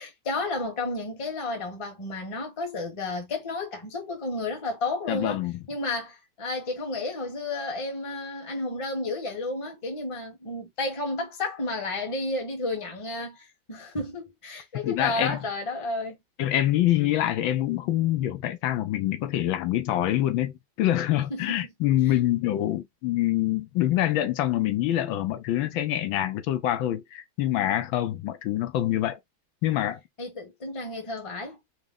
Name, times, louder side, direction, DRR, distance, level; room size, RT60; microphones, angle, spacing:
voice 1, 0.0-5.4 5.7-16.2 21.3-21.5 22.1-22.2 30.2-31.6, left 2 dB, 20° left, 1.0 m, -32 dB
voice 2, 5.1-5.6 14.8-15.4 16.4-29.2 29.6-30.0, left 13 dB, 80° left, 1.4 m, -25 dB
5.0 x 2.1 x 3.7 m
omnidirectional pair, 2.1 m